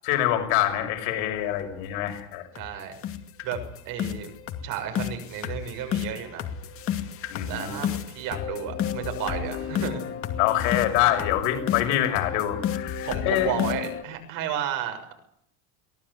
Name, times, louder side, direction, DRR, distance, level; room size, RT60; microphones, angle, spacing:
voice 1, 0.1-2.4 7.3-7.8 10.4-13.6, left 13 dB, 85° left, 5 dB, 6.4 m, -25 dB
sound 1, 1.6-1.7 2.1-2.2 2.6-2.7 3.0-14.0, left 9 dB, 30° left, 2.4 m, -31 dB
voice 2, 2.5-3.0 3.4-4.3 4.6-6.5 7.5-10.0 13.0-15.1, right 8 dB, 50° right, 6 dB, 6.6 m, -32 dB
23.5 x 18.0 x 9.9 m, 0.70 s
cardioid pair, 175°, 41 cm